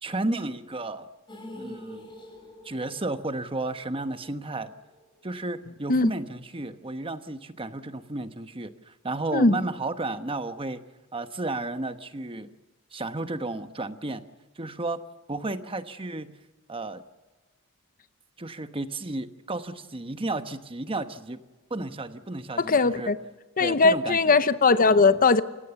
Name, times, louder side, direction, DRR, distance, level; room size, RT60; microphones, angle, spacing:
voice 1, 0.0-1.1 1.6-2.1 2.6-4.7 5.2-10.8 11.1-12.5 12.9-14.2 14.6-15.0 15.3-16.4 16.7-17.0 18.4-21.4 21.7-23.1 23.6-24.4, right 2 dB, 25° right, 1.1 m, -33 dB
sound 1, 1.3-5.4 5.7-5.8 6.1-6.2, left 1 dB, 20° left, 6.3 m, -46 dB
voice 2, 22.6-23.2 23.6-25.4, left 4 dB, 40° left, 0.8 m, -20 dB
28.5 x 16.5 x 7.0 m
head